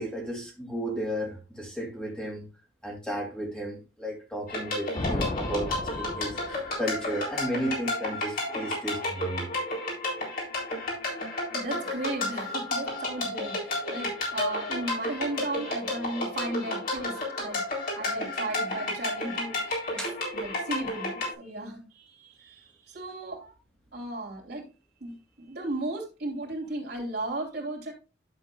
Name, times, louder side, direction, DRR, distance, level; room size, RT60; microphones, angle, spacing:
voice 1, 0.0-2.5 2.8-9.5 16.9-17.0 20.0-20.2, equal, 5° left, 2.3 m, -34 dB
sound 1, 4.5-21.3, left 2 dB, 55° left, 3.9 m, -32 dB
sound 2, 4.9-6.9, left 1 dB, 30° left, 0.9 m, -33 dB
voice 2, 11.5-17.6 17.9-20.0 20.3-23.6 23.9-24.7 25.0-27.9, right 2 dB, 65° right, 3.1 m, -35 dB
11.5 x 7.4 x 2.3 m
head